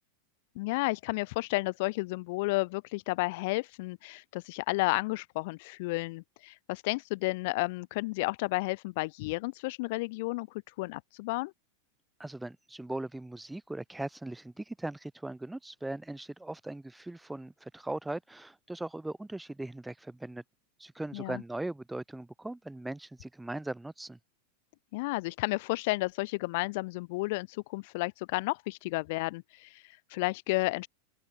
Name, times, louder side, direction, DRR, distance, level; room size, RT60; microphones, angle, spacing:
voice 1, 0.6-11.5 21.1-21.4 24.9-30.9, left 24 dB, 50° left, 0.5 m, -32 dB
voice 2, 12.2-20.4 20.8-24.2, right 2 dB, 5° right, 4.1 m, -39 dB
open air
figure-of-eight pair, 90°, 0 cm